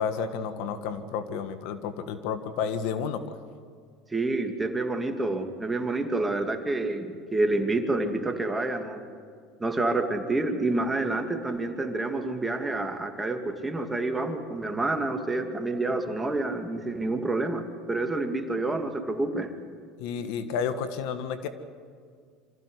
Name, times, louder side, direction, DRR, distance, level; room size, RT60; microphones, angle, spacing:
voice 1, 0.0-3.4 20.0-21.5, left 6 dB, 70° left, 10 dB, 1.5 m, -31 dB
voice 2, 4.1-9.0 9.6-19.5, right 2 dB, 15° right, 5 dB, 2.5 m, -28 dB
25.0 x 15.0 x 9.7 m, 2.1 s
supercardioid pair, 95°, 0 cm